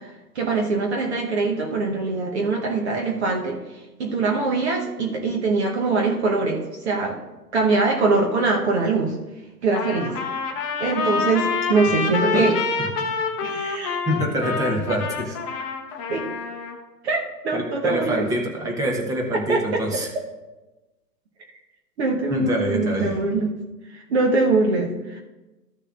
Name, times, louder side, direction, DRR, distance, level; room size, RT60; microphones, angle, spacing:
voice 1, 0.0-3.6 4.0-7.2 7.5-9.2 9.6-10.2 10.8-12.5 13.4-14.0 16.1-16.3 17.0-18.3 19.3-19.8 22.0-23.5 23.9-25.2, right 3 dB, 40° right, 1 dB, 1.1 m, -23 dB
Trumpet, 9.8-16.8, left 5 dB, 20° left, 0.8 m, -27 dB
voice 2, 14.1-15.4 17.5-20.1 22.3-23.1, equal, 5° right, 0 dB, 0.8 m, -25 dB
14.0 x 6.6 x 2.5 m, 1.1 s
figure-of-eight pair, 120°, 50 cm